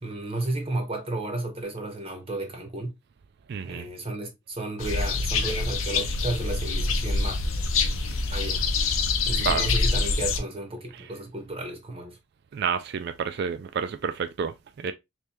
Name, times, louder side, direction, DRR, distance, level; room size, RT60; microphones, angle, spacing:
voice 1, 0.0-2.9 3.6-7.4 8.3-8.6 9.3-12.2, right 2 dB, 25° right, 0.8 m, -33 dB
voice 2, 3.5-3.9 9.4-9.7 12.5-14.9, right 6 dB, 50° right, 0.3 m, -29 dB
sound 1, 4.8-10.4, left 3 dB, 70° left, 0.6 m, -25 dB
3.5 x 3.2 x 2.9 m
head